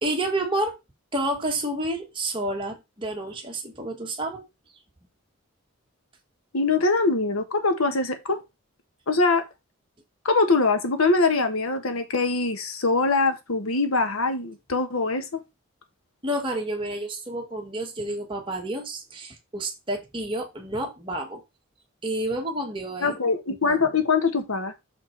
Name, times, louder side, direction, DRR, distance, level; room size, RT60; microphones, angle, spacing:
voice 1, 0.0-0.7 1.1-4.4 16.2-21.4 22.0-23.1, right 1 dB, 25° right, 1.7 m, -29 dB
voice 2, 6.5-8.4 9.1-9.4 10.2-15.4 23.0-24.7, left 3 dB, 85° left, 1.3 m, -23 dB
6.6 x 4.2 x 4.5 m
head